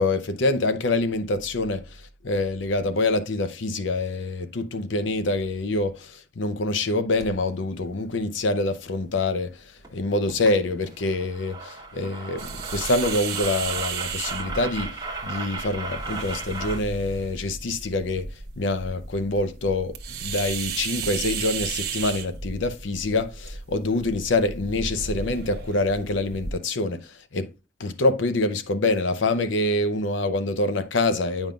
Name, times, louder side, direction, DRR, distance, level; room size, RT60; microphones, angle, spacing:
voice 1, 0.0-1.9 2.2-9.6 9.9-15.0 15.2-18.3 18.6-27.5 27.8-31.5, left 2 dB, 85° left, 0.7 m, -25 dB
sound 1, 7.2-7.4 9.8-9.9 10.3-10.5 10.8-16.8, right 4 dB, 20° right, 1.0 m, -36 dB
sound 2, 12.4-26.5, right 5 dB, 55° right, 0.8 m, -34 dB
8.8 x 5.3 x 2.3 m
head